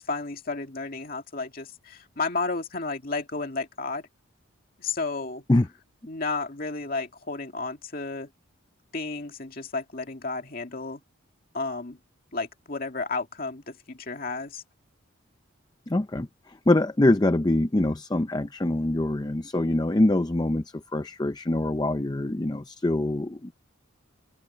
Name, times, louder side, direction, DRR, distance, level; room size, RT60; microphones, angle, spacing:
voice 1, 0.0-4.1 4.8-5.4 6.1-8.3 8.9-11.0 11.5-12.0 12.3-14.6, left 3 dB, 45° left, 2.4 m, -32 dB
voice 2, 15.9-23.5, left 1 dB, 20° left, 0.5 m, -24 dB
open air
head